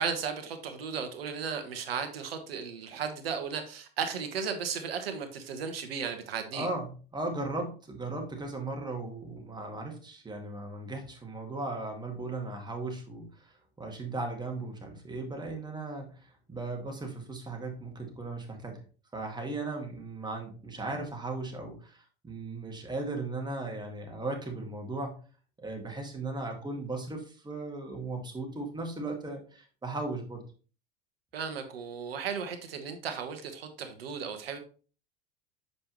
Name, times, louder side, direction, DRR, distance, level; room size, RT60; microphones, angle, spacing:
voice 1, 0.0-6.7 31.3-34.6, right 6 dB, 80° right, 7 dB, 1.3 m, -35 dB
voice 2, 6.5-18.8 19.1-25.2 25.6-30.5, right 2 dB, 15° right, 2 dB, 1.9 m, -37 dB
6.8 x 5.2 x 3.0 m, 0.38 s
hypercardioid pair, 85°, 29 cm